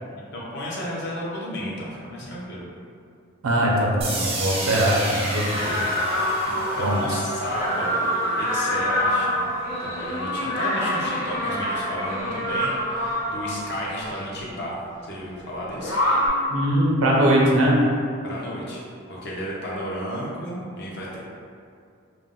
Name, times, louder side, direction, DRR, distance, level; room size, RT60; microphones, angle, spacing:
voice 1, 0.1-2.7 6.4-9.4 9.8-16.0 18.2-18.8 19.1-21.2, equal, 50° left, -5 dB, 0.6 m, -33 dB
voice 2, 3.4-5.8 6.8-7.2 16.5-17.8, right 1 dB, 90° right, -3 dB, 0.5 m, -21 dB
sound 1, 4.0-9.9, right 1 dB, 25° right, 0.3 m, -31 dB
sound 2, 5.5-14.2 15.8-16.3, left 1 dB, 80° left, 1.0 m, -26 dB
2.5 x 2.0 x 3.6 m, 2.4 s
head